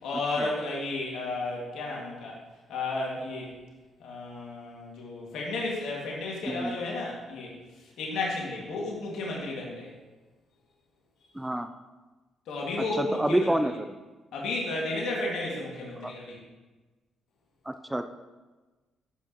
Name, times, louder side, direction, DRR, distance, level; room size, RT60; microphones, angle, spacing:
voice 1, 0.0-2.4 2.7-3.5 4.0-7.5 8.0-9.9 12.5-13.5 14.3-16.4, left 2 dB, 75° left, -3 dB, 2.2 m, -33 dB
voice 2, 11.3-11.7 13.0-13.9 16.0-16.1 17.7-18.1, right 1 dB, 10° right, 8 dB, 0.5 m, -28 dB
13.5 x 6.2 x 3.0 m, 1.2 s
supercardioid pair, 70°, 0 cm